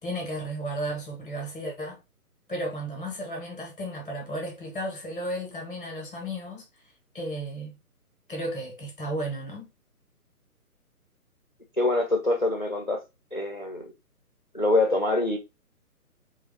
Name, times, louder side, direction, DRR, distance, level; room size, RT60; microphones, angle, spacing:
voice 1, 0.0-2.0 2.5-6.6 7.1-7.8 8.3-9.7, right 1 dB, 5° right, 0.6 m, -34 dB
voice 2, 11.8-13.0 13.3-13.9 14.5-15.4, left 2 dB, 35° left, 0.4 m, -25 dB
3.3 x 2.3 x 3.4 m
figure-of-eight pair, 145°, 46 cm